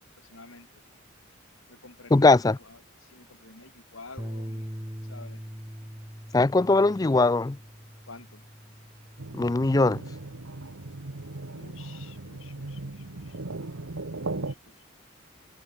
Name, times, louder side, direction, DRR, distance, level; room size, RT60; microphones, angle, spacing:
voice 1, 0.2-0.7 1.7-4.7 5.0-5.4 8.1-8.4 11.5-13.4 14.4-14.8, left 3 dB, 80° left, 4.2 m, -50 dB
voice 2, 2.1-2.6 6.3-7.6 9.3-10.0, left 3 dB, 20° left, 0.4 m, -20 dB
Bass guitar, 4.2-10.4, equal, 10° right, 2.8 m, -42 dB
sound 1, 9.2-14.5, right 2 dB, 85° right, 1.3 m, -37 dB
head